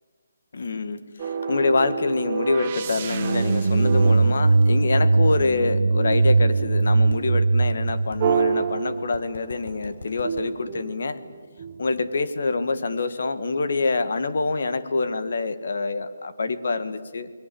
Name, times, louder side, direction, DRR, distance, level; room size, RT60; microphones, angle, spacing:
voice 1, 0.5-11.2 11.8-17.3, left 3 dB, 45° left, 10 dB, 1.7 m, -26 dB
sound 1, 1.2-5.3 8.2-9.7 10.2-12.0, right 6 dB, 20° right, 1.1 m, -29 dB
sound 2, 3.0-9.0, right 3 dB, 75° right, 1.1 m, -20 dB
sound 3, 5.4-5.5 6.1-6.4 7.1-7.2 7.9-8.2 9.1-10.5, left 2 dB, 80° left, 5.2 m, -40 dB
28.5 x 22.0 x 7.8 m, 1.5 s
hypercardioid pair, 180°, 0 cm